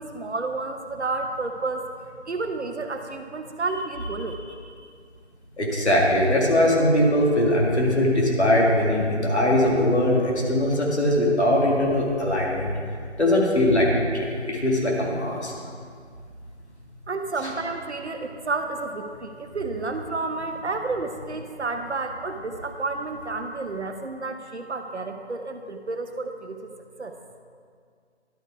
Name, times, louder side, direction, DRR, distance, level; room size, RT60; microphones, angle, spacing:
voice 1, 0.0-1.9 2.3-4.4 17.1-26.6 27.0-27.1, right 3 dB, 75° right, 6 dB, 0.9 m, -30 dB
voice 2, 5.6-12.7 13.2-15.5 17.4-17.5, left 1 dB, 70° left, -3 dB, 2.2 m, -21 dB
11.5 x 4.8 x 4.6 m, 2.1 s
figure-of-eight pair, 170°, 34 cm